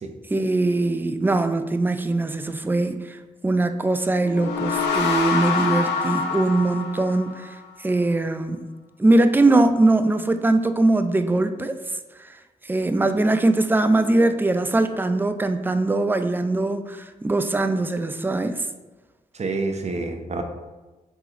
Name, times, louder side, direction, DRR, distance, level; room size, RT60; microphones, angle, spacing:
voice 1, 0.3-8.7 9.0-11.8 12.2-12.4 12.6-18.7, right 2 dB, 10° right, 9 dB, 0.4 m, -21 dB
sound 1, 4.2-7.7, left 5 dB, 80° left, 0.7 m, -26 dB
voice 2, 19.3-20.4, right 3 dB, 40° right, 5 dB, 0.7 m, -28 dB
4.8 x 3.8 x 2.9 m, 1.2 s
hypercardioid pair, 45°, 17 cm